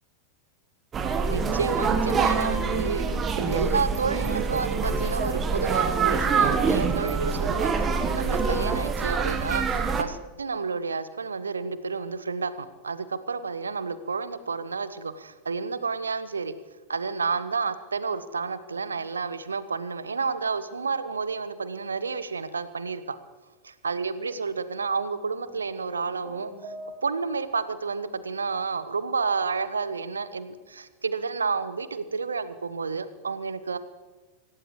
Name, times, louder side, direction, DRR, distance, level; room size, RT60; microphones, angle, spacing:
sound 1, 0.9-10.0, right 5 dB, 25° right, 1.3 m, -25 dB
voice 1, 1.3-3.1 3.4-7.7 8.1-16.5 16.9-23.2 23.8-26.5 27.0-33.8, right 4 dB, 75° right, 14 dB, 0.9 m, -30 dB
sound 2, 25.4-27.5, right 1 dB, ahead, 5.7 m, -43 dB
25.5 x 17.0 x 3.2 m, 1.2 s
figure-of-eight pair, 90°, 0 cm